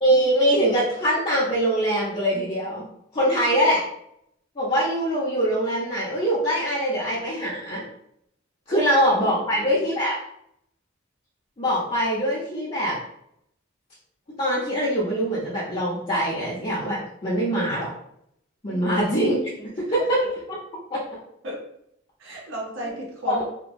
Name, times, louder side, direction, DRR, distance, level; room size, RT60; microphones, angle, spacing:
voice 1, 0.0-2.9 3.1-3.8 4.6-7.8 8.7-10.1 11.6-13.0 14.4-17.9 18.6-19.4 19.8-20.3 20.9-21.0 23.3-23.5, equal, 30° left, -9 dB, 0.6 m, -23 dB
voice 2, 3.4-3.8 8.7-8.9 9.2-9.9 18.7-18.8 19.6-19.7 21.4-21.6 22.2-23.5, right 1 dB, 75° right, -2 dB, 0.8 m, -35 dB
2.9 x 2.1 x 2.5 m, 0.74 s
head